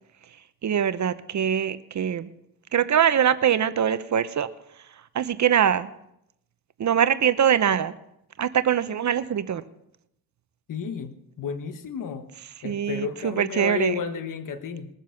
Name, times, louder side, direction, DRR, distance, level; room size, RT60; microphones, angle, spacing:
voice 1, 0.6-2.3 2.7-4.5 5.1-5.9 6.8-7.9 8.4-9.6 12.6-13.9, right 9 dB, 50° right, 13 dB, 0.8 m, -23 dB
voice 2, 10.7-12.3 12.6-14.9, left 7 dB, 55° left, 9 dB, 1.2 m, -32 dB
21.0 x 7.3 x 5.8 m, 0.78 s
cardioid pair, 80°, 38 cm